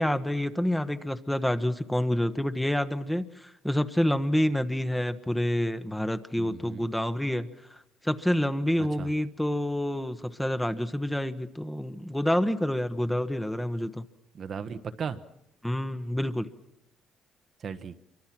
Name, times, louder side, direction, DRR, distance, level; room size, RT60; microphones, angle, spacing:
voice 1, 0.0-7.8 8.0-14.0 15.6-16.5, left 1 dB, 5° left, 9 dB, 1.2 m, -28 dB
voice 2, 6.4-6.9 8.8-9.1 14.3-15.2 17.6-18.0, right 6 dB, 50° right, 9 dB, 1.2 m, -36 dB
27.0 x 24.5 x 6.1 m, 0.83 s
cardioid pair, 95°, 0 cm